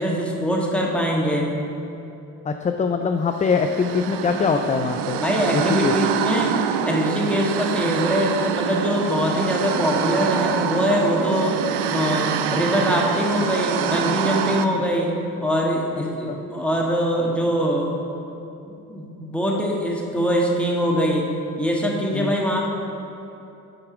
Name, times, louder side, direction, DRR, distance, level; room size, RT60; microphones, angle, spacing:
voice 1, 0.0-1.5 5.2-6.6 6.8-11.6 11.9-15.1 15.4-17.9 18.6-21.3 21.6-22.7, equal, 5° left, -2 dB, 1.6 m, -23 dB
voice 2, 2.4-5.2 5.5-6.0 16.0-16.4 22.1-22.3, left 5 dB, 20° left, 6 dB, 0.3 m, -23 dB
sound 1, 3.4-14.7, right 8 dB, 90° right, 0.5 m, -25 dB
7.9 x 4.7 x 6.1 m, 2.9 s
supercardioid pair, 60°, 38 cm